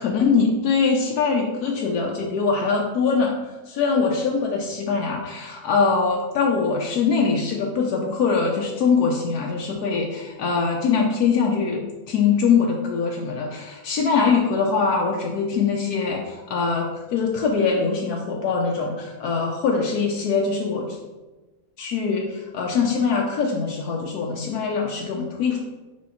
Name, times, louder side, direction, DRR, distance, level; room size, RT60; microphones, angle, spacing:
voice 1, 0.0-3.3 3.7-21.0 21.8-25.6, left 5 dB, 80° left, -1 dB, 1.2 m, -22 dB
5.0 x 4.7 x 4.1 m, 1.2 s
omnidirectional pair, 1.6 m